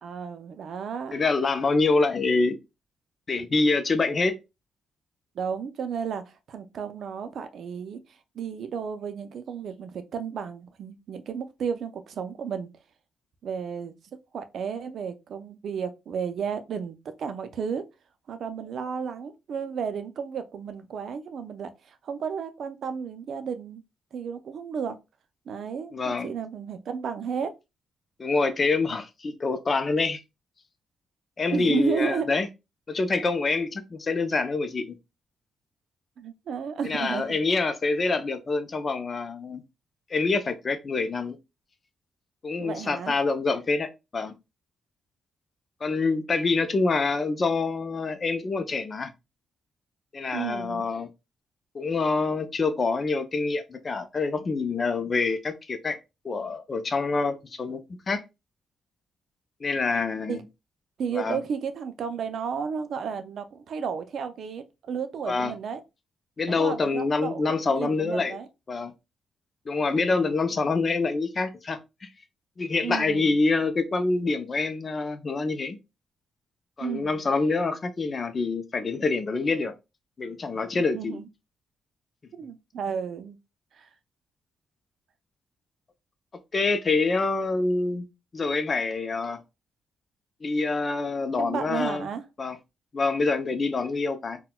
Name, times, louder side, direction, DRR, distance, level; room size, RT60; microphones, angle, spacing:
voice 1, 0.0-1.2 5.3-12.7 13.4-17.8 18.3-23.8 24.1-25.0 25.5-27.5 31.5-32.3 36.2-37.4 42.6-43.1 50.3-50.8 60.3-60.4 61.0-65.8 66.5-68.5 69.9-70.3 72.8-73.4 76.8-77.2 80.9-81.3 82.4-83.4 83.7-83.9 91.3-92.2, right 6 dB, 65° right, 0.4 m, -33 dB
voice 2, 1.1-2.6 3.3-4.3 25.9-26.3 28.2-30.2 31.4-32.5 32.9-34.9 36.8-39.6 40.1-41.4 42.4-44.3 45.8-49.1 50.1-51.1 51.7-56.0 56.2-57.8 58.1-58.2 59.6-60.4 61.1-61.4 65.3-65.5 66.4-68.4 68.7-68.9 69.7-72.1 72.6-75.8 76.8-79.7 80.2-81.2 86.5-88.1 88.3-89.4 90.4-92.1 92.4-92.6 92.9-94.4, left 3 dB, 35° left, 0.5 m, -26 dB
4.1 x 2.2 x 2.2 m
cardioid pair, 95°, 0 cm